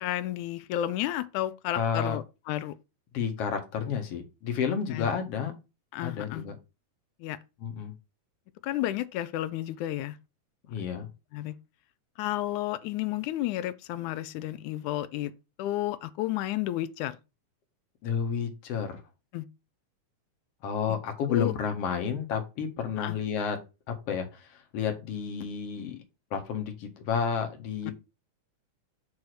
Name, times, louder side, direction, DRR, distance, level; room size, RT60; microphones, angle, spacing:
voice 1, 0.0-2.8 4.9-5.1 5.9-6.5 7.2-7.4 8.6-10.2 11.3-11.6 12.2-15.3 15.6-17.2 19.3-19.5 21.3-21.5 23.0-23.2 27.8-27.9, left 14 dB, 80° left, 2.0 m, -32 dB
voice 2, 1.7-2.2 3.1-5.5 6.0-6.5 7.6-7.9 10.7-11.1 18.0-19.0 20.6-23.6 23.9-26.0 26.3-27.9, left 7 dB, 55° left, 2.2 m, -31 dB
5.5 x 4.9 x 6.1 m
omnidirectional pair, 3.6 m